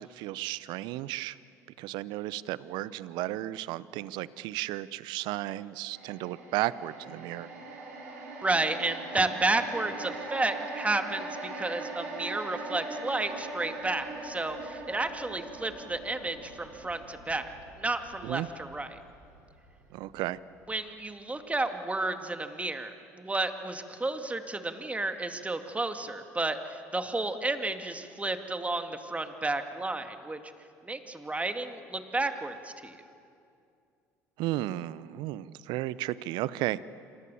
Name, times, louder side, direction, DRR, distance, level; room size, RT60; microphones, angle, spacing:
voice 1, 0.0-1.4 1.8-7.5 18.2-18.5 19.9-20.4 34.4-36.8, right 16 dB, 65° right, 18 dB, 0.8 m, -34 dB
sound 1, 5.9-20.3 20.6-20.8, right 2 dB, 80° right, 5.4 m, -41 dB
voice 2, 8.4-19.0 20.7-30.4 30.8-33.0, right 2 dB, 15° right, 7 dB, 2.3 m, -32 dB
27.5 x 26.5 x 7.2 m, 2.5 s
hypercardioid pair, 60°, 8 cm